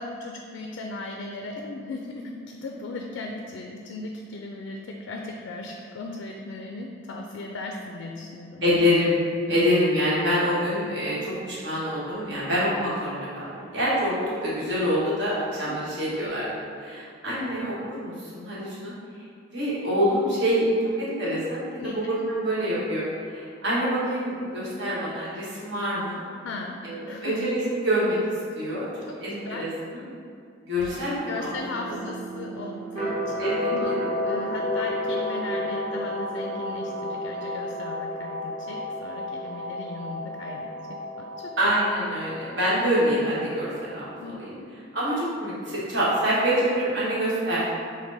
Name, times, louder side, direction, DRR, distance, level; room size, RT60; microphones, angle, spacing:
voice 1, 0.0-8.8 9.5-9.6 15.6-15.8 21.8-22.0 26.4-26.8 27.0-27.3 29.1-29.7 31.3-34.0 34.2-41.6 44.2-44.7, left 2 dB, 80° left, 1 dB, 0.4 m, -37 dB
voice 2, 8.6-9.2 9.5-16.5 16.8-18.9 19.5-26.2 26.8-28.2 28.5-28.9 29.2-30.0 30.7-31.5 31.9-32.0 33.4-33.9 41.6-44.5 44.9-47.7, equal, 65° right, -8 dB, 1.3 m, -26 dB
sound 1, 30.8-44.3, left 1 dB, 30° right, 1.0 m, -32 dB
6.0 x 2.2 x 3.9 m, 2.5 s
head